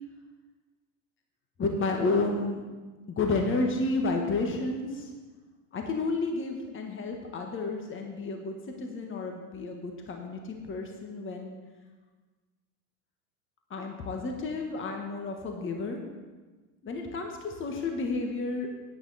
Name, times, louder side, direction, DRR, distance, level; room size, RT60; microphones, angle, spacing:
voice 1, 1.6-2.6 3.1-5.1 5.7-11.5 13.7-16.0 16.8-18.7, left 3 dB, 25° left, 2 dB, 1.6 m, -31 dB
11.0 x 9.3 x 4.3 m, 1.3 s
hypercardioid pair, 90°, 45 cm